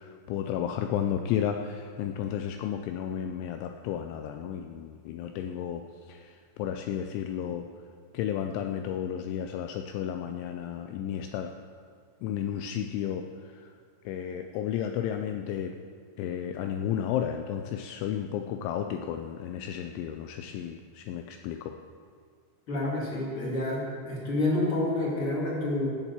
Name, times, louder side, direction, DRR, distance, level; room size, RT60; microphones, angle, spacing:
voice 1, 0.0-7.7 8.1-11.5 12.2-13.7 14.1-15.8 16.2-21.7, left 9 dB, 85° left, 5 dB, 2.7 m, -33 dB
voice 2, 22.7-25.9, left 2 dB, 35° left, -4 dB, 2.5 m, -28 dB
16.0 x 7.2 x 7.3 m, 2.1 s
omnidirectional pair, 5.9 m